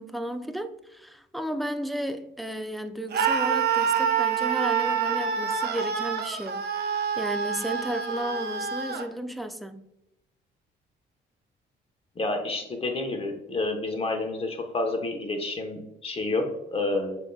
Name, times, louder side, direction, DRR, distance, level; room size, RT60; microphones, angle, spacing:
voice 1, 0.0-6.6 7.2-9.8, right 1 dB, ahead, 0.3 m, -33 dB
Screaming, 3.1-9.1, right 7 dB, 55° right, 0.6 m, -27 dB
voice 2, 12.1-17.2, left 2 dB, 30° left, 1.0 m, -29 dB
7.0 x 2.7 x 2.2 m
cardioid pair, 90°, 20 cm